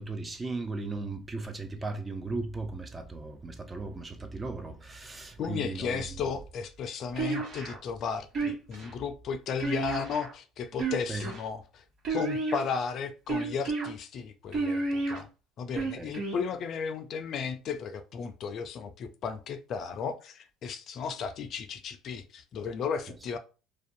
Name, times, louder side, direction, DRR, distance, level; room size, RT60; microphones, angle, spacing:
voice 1, 0.0-6.0 11.1-11.2 15.9-16.1, right 3 dB, 25° right, 0.6 m, -36 dB
voice 2, 5.4-11.8 12.1-15.3 15.6-23.4, left 6 dB, 55° left, 0.4 m, -34 dB
sound 1, 7.2-7.8 8.3-8.9 9.6-10.3 10.7-11.4 12.0-12.7 13.3-13.9 14.5-15.2 15.7-16.4, right 3 dB, 55° right, 1.1 m, -31 dB
2.4 x 2.2 x 2.6 m
hypercardioid pair, 70°, 0 cm